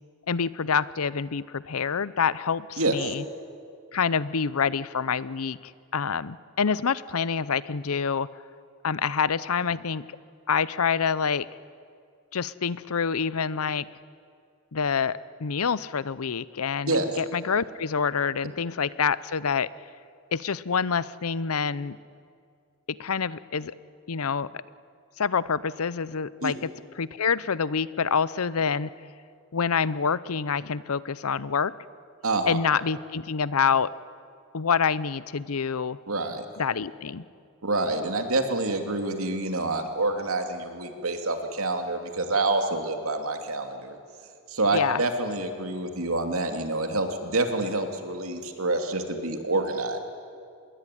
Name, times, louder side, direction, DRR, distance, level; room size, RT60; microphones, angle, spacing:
voice 1, 0.3-3.2 3.9-8.3 8.8-10.2 10.5-11.5 12.3-13.9 14.7-19.7 20.3-22.0 22.9-23.7 24.1-24.5 25.2-28.9 29.5-31.7 32.5-33.9 34.5-36.0 36.6-37.2 44.7-45.0, left 6 dB, 85° left, 18 dB, 0.7 m, -27 dB
voice 2, 2.8-3.1 16.9-17.1 26.4-26.5 32.2-32.6 36.1-36.4 37.6-44.0 44.5-50.0, right 2 dB, 80° right, 5 dB, 2.8 m, -27 dB
25.5 x 21.0 x 10.0 m, 2.3 s
head